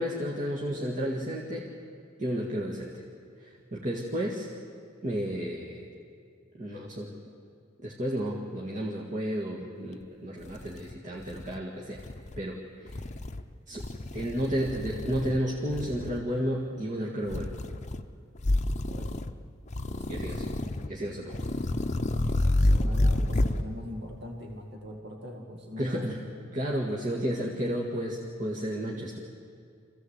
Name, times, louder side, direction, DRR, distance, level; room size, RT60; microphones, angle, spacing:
voice 1, 0.0-1.7 2.2-3.0 3.4-4.5 5.0-5.9 6.5-7.1 7.8-12.0 12.4-13.0 13.7-13.9 14.1-17.5 20.1-20.4 20.9-21.4 25.8-26.2 26.5-29.2, equal, 40° right, -3 dB, 2.0 m, -32 dB
sound 1, 10.0-10.1 10.4-11.6 12.0-12.4 12.9-13.4 13.8-15.4 15.7-16.2 17.3-18.0 18.4-19.3 19.7-20.9 21.3-23.6, left 1 dB, 35° left, 0.8 m, -29 dB
voice 2, 18.9-19.3 20.0-20.6 21.4-21.6 22.2-26.1 26.9-27.0, equal, 55° right, 1 dB, 2.0 m, -42 dB
25.5 x 16.0 x 8.2 m, 2.3 s
head